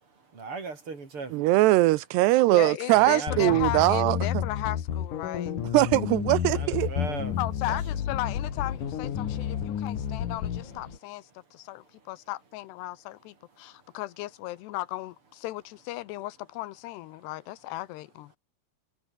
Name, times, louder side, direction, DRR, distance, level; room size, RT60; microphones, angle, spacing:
voice 1, 0.3-1.5 2.9-3.4 6.5-7.4 7.7-7.8, right 4 dB, 30° right, 5.4 m, -38 dB
voice 2, 1.3-4.4 5.7-6.9, right 18 dB, 90° right, 2.9 m, -21 dB
voice 3, 2.5-5.6 7.4-18.3, left 17 dB, 85° left, 3.1 m, -36 dB
sound 1, 3.3-10.7, left 9 dB, 55° left, 3.3 m, -31 dB
sound 2, 5.6-11.0, left 5 dB, 30° left, 3.2 m, -44 dB
omnidirectional pair, 4.7 m